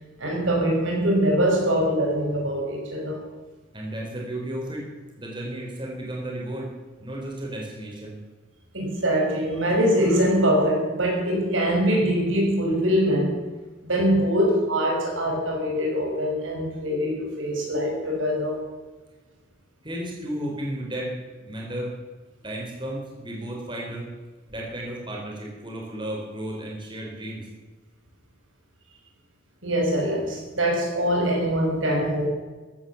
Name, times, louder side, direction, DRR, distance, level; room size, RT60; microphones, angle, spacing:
voice 1, 0.2-3.2 8.7-13.4 13.8-18.6 29.6-32.3, equal, 85° right, 0 dB, 5.9 m, -23 dB
voice 2, 3.7-4.9 5.2-6.7 7.0-8.2 19.8-21.1 21.5-21.9 22.4-24.1 24.5-27.5, right 1 dB, 25° right, -1 dB, 3.8 m, -33 dB
14.5 x 12.5 x 7.1 m, 1.3 s
head